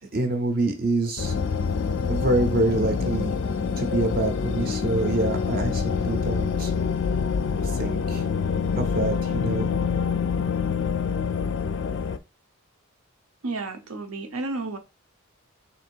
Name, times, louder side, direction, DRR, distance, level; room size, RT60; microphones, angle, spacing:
voice 1, 0.1-1.3 2.1-3.3 3.8-6.7 7.6-8.2 8.8-9.7, right 2 dB, 45° right, 0.6 m, -26 dB
sound 1, 1.2-12.2, left 5 dB, 55° left, 0.4 m, -26 dB
voice 2, 13.4-14.8, right 3 dB, 80° right, 0.7 m, -31 dB
3.4 x 2.6 x 4.5 m
head